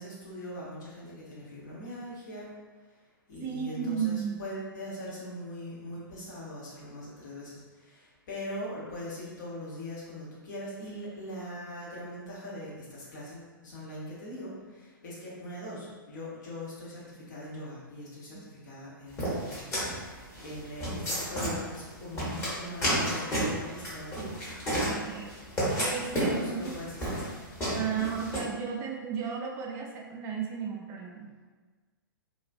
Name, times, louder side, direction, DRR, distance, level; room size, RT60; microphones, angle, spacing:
voice 1, 0.0-2.5 3.3-7.6 7.9-8.0 8.3-18.3 18.6-19.7 20.4-24.3 26.2-27.2 27.9-28.1, left 1 dB, 55° left, -6 dB, 1.0 m, -41 dB
voice 2, 3.4-4.4 18.3-18.5 24.8-25.3 25.8-26.8 27.7-31.3, right 7 dB, 20° right, -1 dB, 0.4 m, -34 dB
sound 1, 19.2-28.4, equal, 20° left, 1.0 m, -31 dB
2.3 x 2.3 x 2.4 m, 1.4 s
figure-of-eight pair, 115°, 12 cm